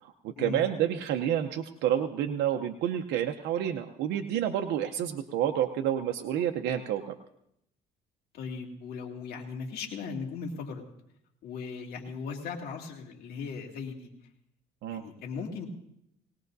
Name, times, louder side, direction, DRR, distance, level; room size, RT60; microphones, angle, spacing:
voice 1, 0.0-7.1 14.8-15.0, right 10 dB, 80° right, 4 dB, 0.7 m, -29 dB
voice 2, 8.3-10.8 11.4-14.1 14.9-15.7, left 5 dB, 65° left, 1 dB, 2.4 m, -38 dB
20.0 x 18.5 x 2.7 m, 0.78 s
cardioid pair, 110°, 17 cm